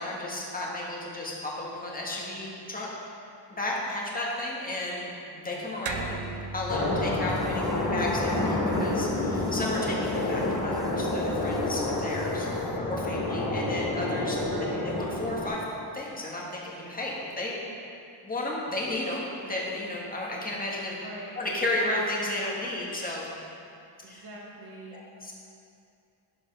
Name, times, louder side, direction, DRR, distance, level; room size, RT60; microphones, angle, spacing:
voice 1, 0.0-2.9 3.5-12.5 12.9-15.6 15.9-17.6 18.2-21.0 21.4-23.3 24.1-24.2 24.9-25.3, left 1 dB, 20° left, -4 dB, 1.6 m, -33 dB
sound 1, 5.9-10.6, right 4 dB, 75° right, 0.7 m, -40 dB
sound 2, 6.7-15.5, left 2 dB, 45° left, 1.6 m, -28 dB
sound 3, 7.3-12.8, right 1 dB, 10° right, 0.7 m, -48 dB
voice 2, 14.5-14.8 21.0-21.4 24.0-25.1, right 2 dB, 60° right, -4 dB, 2.2 m, -43 dB
11.5 x 5.3 x 5.3 m, 2.6 s
wide cardioid pair, 160°, 44 cm